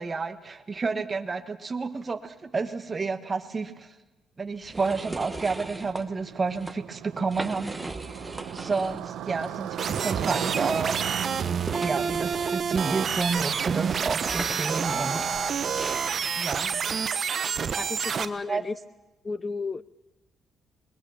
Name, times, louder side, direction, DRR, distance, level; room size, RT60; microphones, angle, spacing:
voice 1, 0.0-3.9 4.4-7.8 8.5-15.3 16.3-17.0 18.5-18.6, right 4 dB, 35° right, 8 dB, 1.4 m, -30 dB
sound 1, 4.6-6.0 6.5-6.7 7.2-9.1 9.4-9.5 10.4-16.0, right 2 dB, 15° right, 1.0 m, -38 dB
Motorcycle, 4.9-16.4, right 11 dB, 85° right, 0.9 m, -39 dB
sound 2, 9.8-18.2, right 6 dB, 50° right, 0.9 m, -28 dB
voice 2, 17.8-18.8 19.2-19.8, left 4 dB, 30° left, 19 dB, 0.7 m, -33 dB
21.0 x 20.0 x 7.2 m, 1.1 s
cardioid pair, 90°, 0 cm